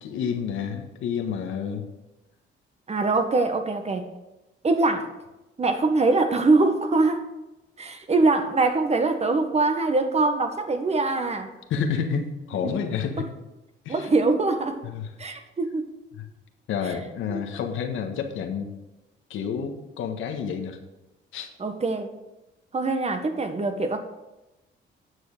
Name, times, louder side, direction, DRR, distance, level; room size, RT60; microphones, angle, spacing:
voice 1, 0.0-1.9 11.7-13.3 13.8-14.1 14.8-15.1 16.7-18.7 19.3-20.8 21.3-21.5, left 7 dB, 80° left, 5 dB, 1.5 m, -29 dB
voice 2, 2.9-4.1 4.6-5.1 5.6-7.3 7.8-11.5 12.6-12.7 13.2-13.3 13.9-14.8 15.2-16.0 17.3-17.4 21.6-22.1 22.7-24.0, right 3 dB, 35° right, 7 dB, 1.4 m, -23 dB
9.7 x 6.4 x 6.5 m, 1.0 s
cardioid pair, 90°, 20 cm